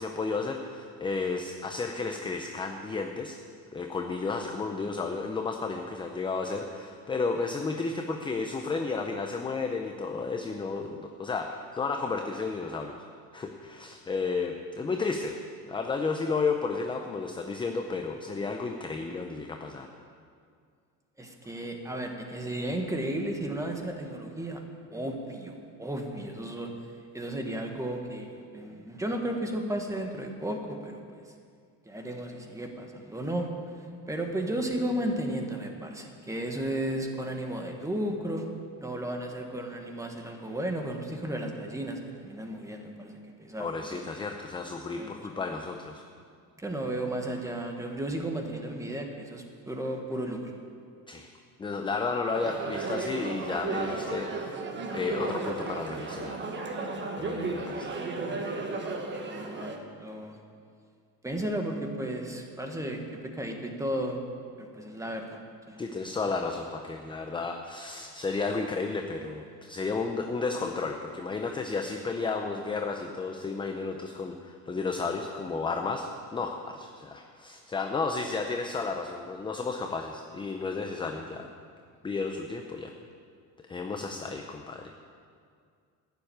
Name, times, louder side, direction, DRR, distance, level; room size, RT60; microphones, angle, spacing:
voice 1, 0.0-3.4 3.7-13.0 13.3-15.4 15.7-19.9 43.6-46.0 51.1-51.3 51.6-54.6 54.9-56.4 57.2-58.0 65.8-81.5 82.0-82.9 83.7-85.0, left 4 dB, 15° left, 4 dB, 0.5 m, -32 dB
voice 2, 21.2-24.6 24.9-26.7 27.1-31.0 31.8-33.5 34.1-38.5 38.8-43.7 45.0-45.5 46.6-50.5 59.2-60.4 61.2-63.0 63.3-64.2 64.6-65.4 65.7-65.8, right 1 dB, 10° right, 3 dB, 1.3 m, -34 dB
sound 1, 52.3-59.8, right 3 dB, 30° right, 1.3 m, -34 dB
11.5 x 7.3 x 9.2 m, 2.2 s
cardioid pair, 140°, 38 cm